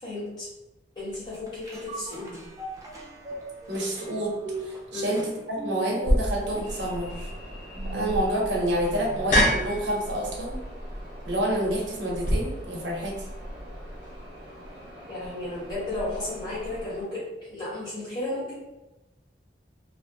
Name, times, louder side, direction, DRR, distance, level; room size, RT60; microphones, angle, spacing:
voice 1, 0.0-0.5 0.9-2.4 4.9-5.1 15.1-18.5, left 2 dB, 25° left, -10 dB, 1.5 m, -34 dB
sound 1, 1.1-9.7 10.1-10.2, right 2 dB, 20° right, 0.4 m, -41 dB
voice 2, 3.7-4.3 4.6-7.3 7.9-10.6 11.2-13.2, right 1 dB, 90° right, -3 dB, 0.8 m, -28 dB
sound 2, 6.0-12.3, equal, 45° left, 0.5 m, -28 dB
sound 3, 6.6-17.0, equal, 70° left, 1.3 m, -43 dB
3.0 x 2.0 x 2.6 m, 0.99 s
head